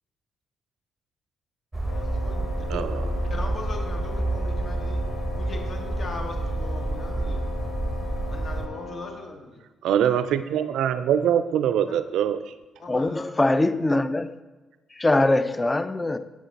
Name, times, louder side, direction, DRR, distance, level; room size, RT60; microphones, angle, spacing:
sound 1, 1.7-8.7, right 2 dB, 10° right, 0.8 m, -28 dB
Wind instrument woodwind instrument, 1.9-9.3, left 4 dB, 75° left, 0.9 m, -39 dB
voice 1, 2.0-3.0 3.3-5.0 5.3-7.6 8.3-9.6 11.9-12.0 12.8-13.3 13.5-13.6, left 2 dB, 50° left, 3 dB, 1.3 m, -39 dB
voice 2, 9.8-12.4, right 9 dB, 65° right, 12 dB, 0.4 m, -23 dB
voice 3, 12.9-14.3 15.0-16.2, left 2 dB, 20° left, 12 dB, 0.4 m, -22 dB
7.6 x 5.0 x 4.1 m, 1.2 s
hypercardioid pair, 45°, 0 cm